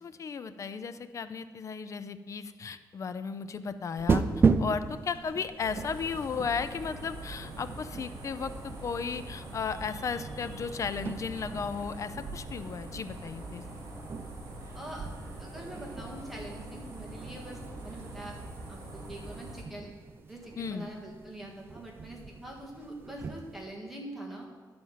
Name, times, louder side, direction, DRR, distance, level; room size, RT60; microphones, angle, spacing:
voice 1, 0.0-4.2 4.6-13.6 20.6-20.9, left 5 dB, 45° left, 12 dB, 0.4 m, -35 dB
sound 1, 4.0-23.7, right 5 dB, 30° right, 0.4 m, -36 dB
sound 2, 5.6-19.6, right 2 dB, 45° right, 2.2 m, -43 dB
voice 2, 14.7-15.1 15.4-18.4 18.7-19.9 20.3-24.5, right 1 dB, ahead, -3 dB, 1.8 m, -44 dB
10.5 x 4.3 x 7.3 m, 1.5 s
cardioid pair, 135°, 8 cm